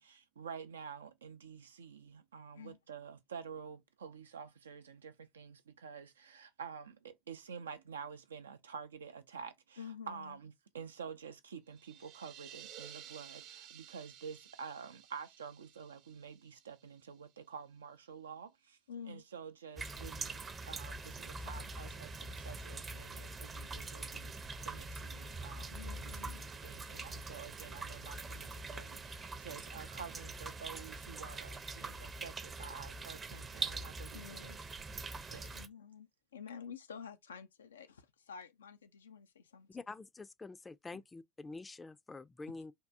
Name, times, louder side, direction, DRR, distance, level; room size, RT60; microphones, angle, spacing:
voice 1, 0.0-9.8 10.1-18.8 19.1-34.5 35.3-35.5, right 6 dB, 90° right, 0.4 m, -49 dB
voice 2, 9.8-10.4 18.9-19.2 25.7-26.4 34.1-34.6 35.3-39.8 40.9-41.0, left 6 dB, 90° left, 0.4 m, -50 dB
sound 1, 11.7-17.3, right 10 dB, 70° right, 0.8 m, -54 dB
sound 2, 19.8-35.7, right 3 dB, 30° right, 0.6 m, -44 dB
voice 3, 39.7-42.7, left 3 dB, 20° left, 0.4 m, -47 dB
3.5 x 2.3 x 2.6 m
hypercardioid pair, 70°, 0 cm